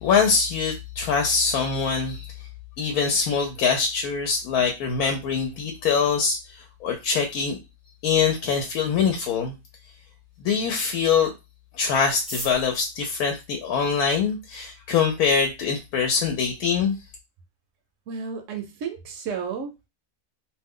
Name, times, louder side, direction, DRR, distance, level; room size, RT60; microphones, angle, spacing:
voice 1, 0.0-2.3 2.8-7.6 8.0-9.5 10.4-11.3 11.7-17.0, left 6 dB, 90° left, 3 dB, 1.1 m, -23 dB
sound 1, 12.1-14.3 15.1-15.2 15.5-15.6 15.8-16.3 16.6-16.7 16.9-17.3 17.7-17.8 18.2-18.5, equal, ahead, 0.4 m, -40 dB
voice 2, 18.1-19.7, right 6 dB, 70° right, 5 dB, 0.8 m, -32 dB
2.5 x 2.1 x 3.6 m, 0.25 s
omnidirectional pair, 1.5 m